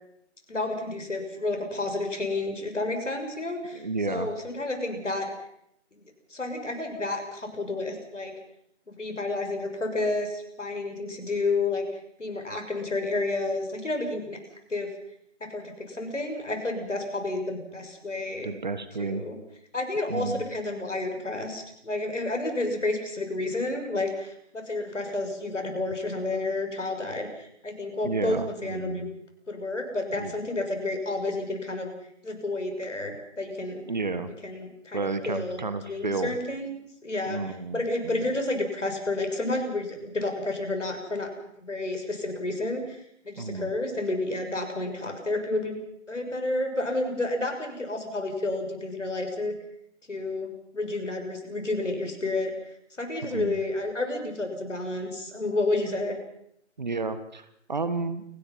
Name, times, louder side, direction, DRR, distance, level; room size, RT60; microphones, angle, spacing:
voice 1, 0.5-5.3 5.9-6.0 6.3-8.3 8.9-11.8 12.2-14.4 14.7-14.9 15.4-18.5 19.0-19.4 19.7-29.1 29.5-31.9 32.2-33.9 34.4-36.8 37.0-41.3 41.6-45.8 46.1-49.5 50.1-56.2, left 2 dB, 75° left, 4 dB, 6.7 m, -30 dB
voice 2, 3.7-4.3 18.4-19.2 20.1-20.4 28.0-29.1 30.2-30.3 33.9-34.3 34.9-36.3 37.3-38.2 43.4-43.7 53.2-53.6 56.8-58.2, right 3 dB, 35° right, 12 dB, 1.6 m, -31 dB
29.5 x 19.0 x 5.7 m, 0.72 s
figure-of-eight pair, 165°, 37 cm